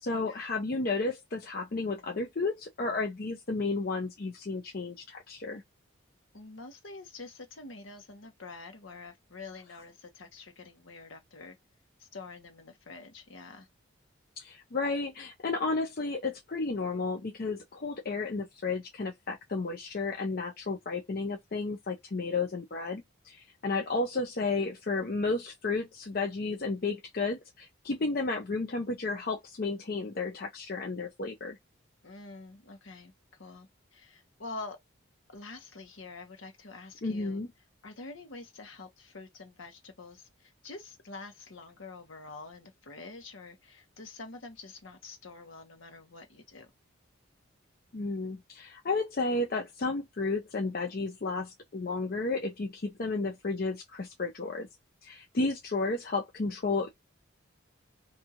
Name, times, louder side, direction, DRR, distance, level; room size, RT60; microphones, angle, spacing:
voice 1, 0.0-5.6 14.4-31.6 37.0-37.5 47.9-54.7 55.0-56.9, left 3 dB, 45° left, 0.5 m, -32 dB
voice 2, 6.3-11.6 12.0-13.7 32.0-33.1 33.4-34.8 35.3-37.4 37.8-46.7, left 3 dB, 75° left, 1.1 m, -46 dB
2.7 x 2.4 x 2.8 m
head